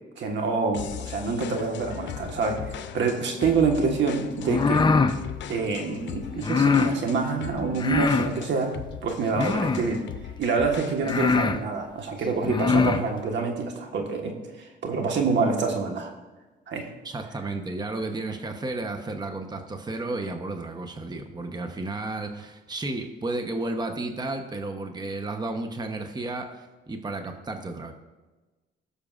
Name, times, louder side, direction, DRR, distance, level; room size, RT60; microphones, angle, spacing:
voice 1, 0.2-4.9 5.5-10.0 10.4-16.1 16.7-16.9, right 4 dB, 65° right, 3 dB, 1.4 m, -26 dB
sound 1, 0.7-11.4, left 9 dB, 65° left, 0.7 m, -39 dB
sound 2, 4.4-5.2 6.4-6.9 7.8-8.3 9.3-9.9 10.6-10.7 11.0-11.6 12.4-13.0, left 4 dB, 25° left, 0.6 m, -22 dB
voice 2, 17.0-27.9, right 2 dB, 20° right, 5 dB, 0.9 m, -32 dB
18.0 x 6.6 x 2.5 m, 1.2 s
cardioid pair, 90°, 20 cm